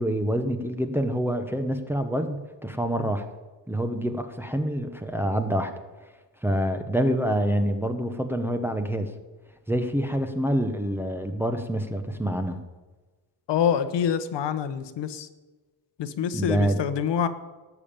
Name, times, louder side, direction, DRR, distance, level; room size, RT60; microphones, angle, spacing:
voice 1, 0.0-3.3 3.7-5.7 6.4-9.1 9.7-12.6 16.3-16.8, equal, 5° right, 5 dB, 0.8 m, -26 dB
voice 2, 13.5-15.3 16.0-17.3, left 8 dB, 65° left, 11 dB, 1.1 m, -26 dB
17.0 x 7.2 x 8.7 m, 1.2 s
cardioid pair, 170°, 45 cm